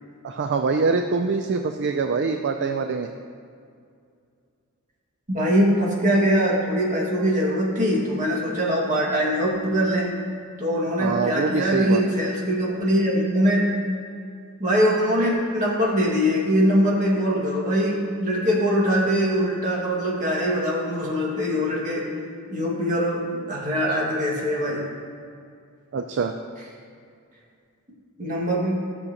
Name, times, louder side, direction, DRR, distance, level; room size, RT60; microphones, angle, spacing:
voice 1, 0.2-3.1 11.0-12.0 25.9-26.3, right 4 dB, 55° right, 6 dB, 0.4 m, -24 dB
voice 2, 5.3-10.1 10.6-13.7 14.6-22.0 22.5-24.8 28.2-28.8, equal, 35° right, -4 dB, 1.9 m, -22 dB
14.0 x 6.5 x 2.9 m, 2.3 s
head